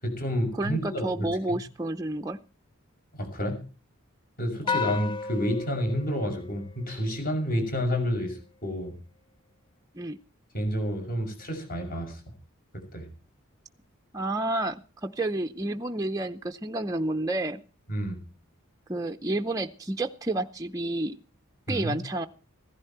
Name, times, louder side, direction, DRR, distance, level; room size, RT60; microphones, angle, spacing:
voice 1, 0.0-1.0 3.1-3.6 4.4-8.9 10.5-12.2 12.7-13.1 17.9-18.2 21.7-22.0, equal, 40° left, 4 dB, 6.6 m, -29 dB
voice 2, 0.5-2.4 4.6-4.8 9.9-10.2 14.1-17.6 18.9-21.1 21.7-22.3, right 2 dB, 15° right, 5 dB, 0.6 m, -30 dB
sound 1, 4.7-7.2, left 5 dB, 25° left, 1.2 m, -33 dB
16.0 x 14.5 x 4.4 m, 0.35 s
head